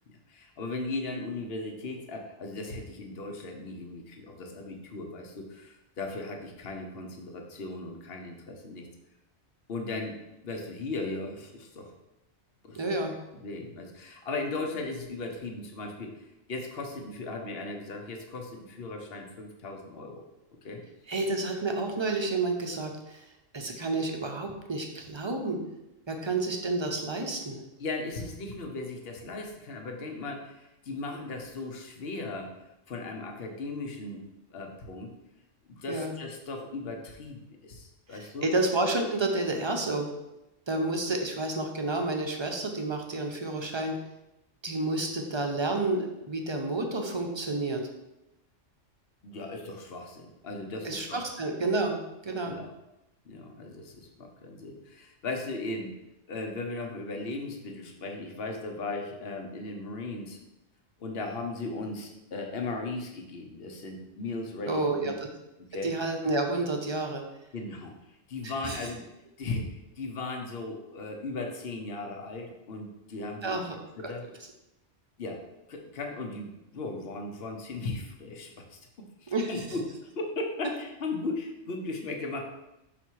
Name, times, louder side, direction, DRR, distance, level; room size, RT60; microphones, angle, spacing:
voice 1, 0.3-8.9 9.7-10.2 10.4-11.9 12.6-12.8 13.3-20.3 20.6-20.8 27.8-32.6 32.9-34.2 34.5-35.1 35.7-38.5 49.2-51.2 52.5-52.7 53.2-56.0 56.3-60.4 61.0-65.2 65.7-65.9 67.5-69.1 69.4-73.6 74.0-74.2 75.2-82.4, left 3 dB, 55° left, 3 dB, 1.1 m, -37 dB
voice 2, 12.7-13.2 21.1-23.3 23.5-25.6 26.1-27.6 35.9-36.1 38.1-40.1 40.7-44.0 44.6-47.8 50.8-52.0 52.2-52.5 64.7-65.1 65.8-67.2 68.4-68.8 73.4-73.8 74.0-74.1 79.3-79.6, right 2 dB, 25° right, 3 dB, 0.7 m, -30 dB
5.8 x 4.2 x 4.6 m, 0.91 s
omnidirectional pair, 1.3 m